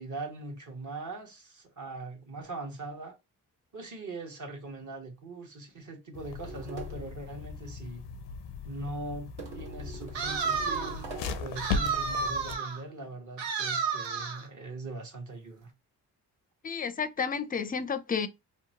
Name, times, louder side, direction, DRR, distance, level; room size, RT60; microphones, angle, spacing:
voice 1, 0.0-3.2 3.7-8.1 8.6-15.7, right 2 dB, 45° right, 1.1 m, -41 dB
sound 1, 6.1-12.6, left 5 dB, 90° left, 0.5 m, -38 dB
sound 2, 6.4-7.1 9.4-11.5, right 5 dB, 65° right, 1.3 m, -44 dB
sound 3, 10.1-11.0 11.6-12.8 13.4-14.5, right 5 dB, 85° right, 0.7 m, -31 dB
voice 2, 16.6-18.3, left 6 dB, 20° left, 0.4 m, -31 dB
2.8 x 2.1 x 2.8 m
supercardioid pair, 55°, 42 cm